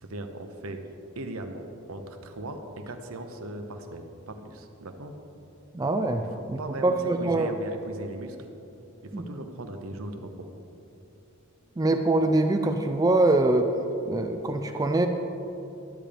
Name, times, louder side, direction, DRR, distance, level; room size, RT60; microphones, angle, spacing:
voice 1, 0.0-0.8 1.2-5.1 6.2-8.4 9.0-10.3, right 2 dB, 80° right, 6 dB, 0.8 m, -38 dB
voice 2, 5.7-7.5 9.1-9.3 11.8-13.7 14.1-15.1, right 2 dB, 15° right, 6 dB, 0.3 m, -24 dB
12.5 x 8.7 x 3.4 m, 3.0 s
head